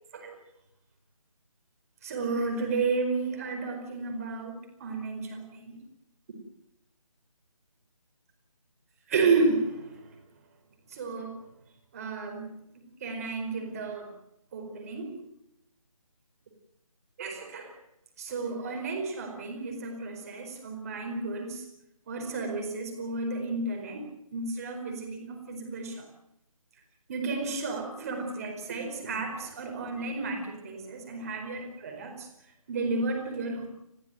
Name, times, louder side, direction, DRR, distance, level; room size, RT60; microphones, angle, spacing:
voice 1, 2.0-5.8 9.1-10.0 10.9-11.4 11.9-12.5 12.7-14.1 14.5-15.2 17.2-17.8 18.2-21.7 22.1-26.1 27.1-32.3 32.7-33.7, right 3 dB, 25° right, 3 dB, 4.8 m, -32 dB
28.0 x 15.5 x 9.1 m, 0.83 s
figure-of-eight pair, 160°, 18 cm